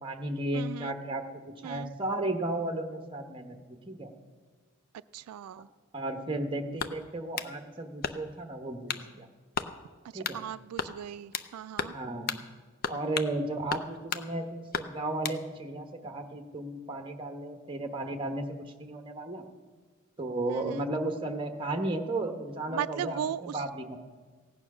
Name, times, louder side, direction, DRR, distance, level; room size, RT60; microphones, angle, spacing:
voice 1, 0.0-4.1 5.9-9.3 10.1-10.4 11.9-12.4 12.9-18.4 18.8-19.4 20.2-24.0, right 2 dB, 20° right, 5 dB, 1.0 m, -34 dB
voice 2, 0.5-0.9 1.6-1.9 5.1-5.7 10.1-11.9 20.5-20.9 22.7-23.6, right 9 dB, 85° right, 16 dB, 0.3 m, -37 dB
sound 1, 6.8-7.5 8.0-8.4 8.9-9.1 9.5-9.7 10.2-10.4 10.8-11.5 11.8-12.0 12.3-12.4 12.8-13.3 13.7-14.3 14.7-15.4, left 6 dB, 40° left, 0.5 m, -34 dB
16.0 x 9.0 x 6.0 m, 1.4 s
head